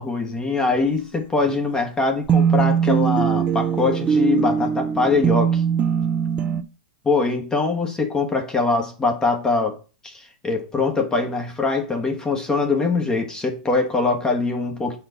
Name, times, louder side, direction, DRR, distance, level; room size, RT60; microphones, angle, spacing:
voice 1, 0.0-5.6 7.0-15.0, left 3 dB, 15° left, 1.3 m, -23 dB
sound 1, 2.3-6.6, right 7 dB, 25° right, 0.6 m, -20 dB
7.5 x 4.4 x 4.1 m
hypercardioid pair, 130°, 5 cm